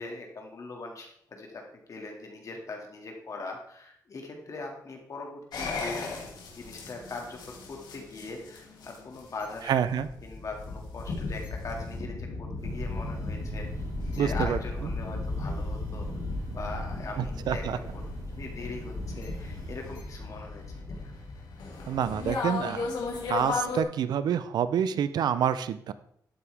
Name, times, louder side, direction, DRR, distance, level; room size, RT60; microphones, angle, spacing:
voice 1, 0.0-6.2 6.6-13.8 14.1-18.0 18.4-21.1, left 3 dB, 50° left, 1 dB, 2.2 m, -41 dB
sound 1, 5.5-23.8, left 3 dB, 85° left, 2.3 m, -36 dB
voice 2, 9.7-10.1 14.2-14.6 17.2-17.8 21.9-22.9 23.3-25.9, right 8 dB, 85° right, 13 dB, 0.5 m, -27 dB
Thunder, 12.6-20.5, right 1 dB, 55° right, 4.5 m, -40 dB
12.0 x 8.6 x 3.5 m, 0.68 s
cardioid pair, 110°, 7 cm